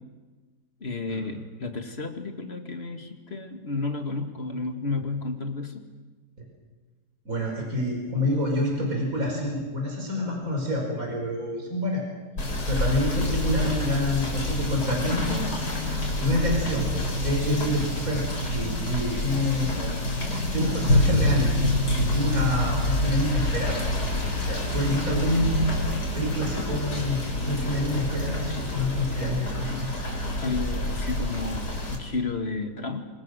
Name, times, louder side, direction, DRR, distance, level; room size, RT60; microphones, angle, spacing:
voice 1, 0.8-5.8 29.7-29.9 30.4-33.0, left 3 dB, 35° left, 5 dB, 2.4 m, -32 dB
voice 2, 7.3-12.0 12.7-15.5 16.1-19.9 20.5-23.8 24.4-25.6 26.1-27.2 27.5-29.9, left 1 dB, 50° right, 1 dB, 5.7 m, -27 dB
Rain / Motor vehicle (road), 12.4-32.0, left 1 dB, 65° left, 5.2 m, -27 dB
26.5 x 26.0 x 6.6 m, 1.3 s
omnidirectional pair, 1.9 m